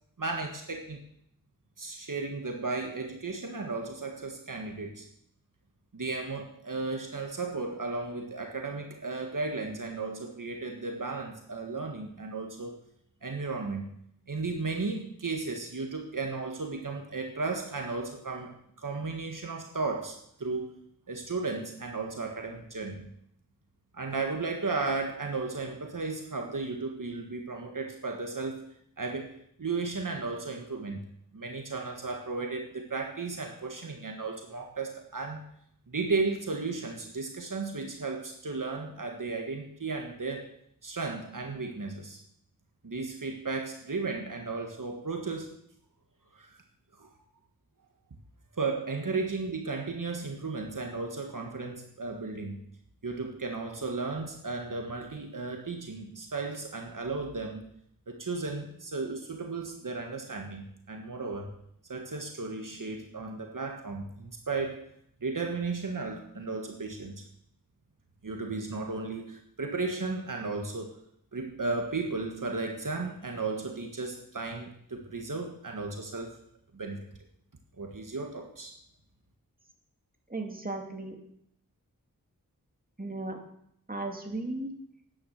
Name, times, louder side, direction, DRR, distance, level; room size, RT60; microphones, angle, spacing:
voice 1, 0.2-1.0 1.8-5.1 5.9-12.8 13.2-13.9 14.3-18.5 18.8-20.8 21.1-23.1 23.9-28.6 29.0-29.3 29.6-31.0 31.3-35.4 35.9-40.5 40.8-42.2 42.8-45.5 46.3-46.6 47.0-47.1 48.6-52.6 53.0-57.6 58.1-61.5 61.9-64.8 65.2-67.2 68.2-71.0 71.3-76.3 76.7-77.0 77.8-78.7, right 3 dB, 65° right, 3 dB, 1.7 m, -34 dB
voice 2, 80.3-81.2 83.0-83.4 83.9-84.7, right 2 dB, 25° right, 2 dB, 2.5 m, -35 dB
10.5 x 9.7 x 6.6 m, 0.71 s
wide cardioid pair, 45°, 34 cm